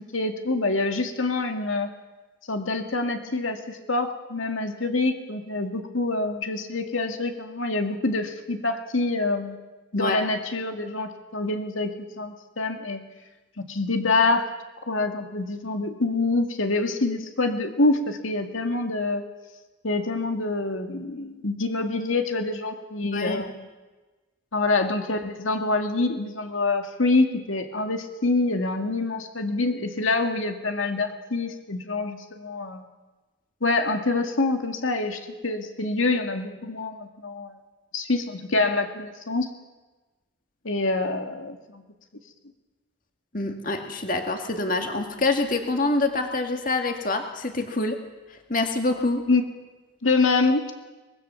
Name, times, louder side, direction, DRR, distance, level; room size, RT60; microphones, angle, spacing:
voice 1, 0.1-1.9 2.5-9.6 9.9-13.0 13.6-14.5 14.8-19.2 19.8-23.7 24.5-32.8 33.6-37.5 37.9-39.5 40.6-41.8 49.3-49.4 50.0-50.7, left 3 dB, 80° left, 5 dB, 2.1 m, -26 dB
voice 2, 23.1-23.4 43.3-48.0 48.5-49.2, left 2 dB, 40° left, 4 dB, 2.1 m, -26 dB
24.0 x 20.0 x 7.1 m, 1.2 s
head